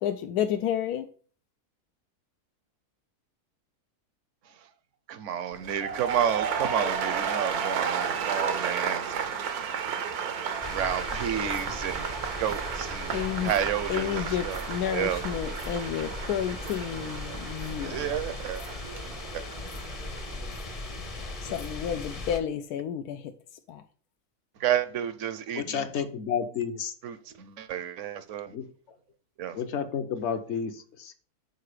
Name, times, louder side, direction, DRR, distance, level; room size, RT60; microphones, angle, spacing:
voice 1, 0.0-1.1 13.1-13.5 13.9-18.1 21.4-23.3 23.7-23.8, left 9 dB, 85° left, 1.1 m, -31 dB
voice 2, 5.1-9.4 10.7-12.1 12.4-14.6 14.9-15.2 17.8-18.6 19.3-19.4 24.6-25.9 27.0-28.5 29.4-29.6, right 9 dB, 60° right, 0.9 m, -31 dB
sound 1, 5.5-21.6 21.9-22.3, right 7 dB, 80° right, 1.3 m, -33 dB
sound 2, 10.6-22.4, left 2 dB, 30° left, 0.7 m, -38 dB
voice 3, 25.5-26.9 28.5-28.6 29.5-31.2, left 7 dB, 55° left, 0.9 m, -31 dB
6.7 x 4.6 x 4.9 m
omnidirectional pair, 1.6 m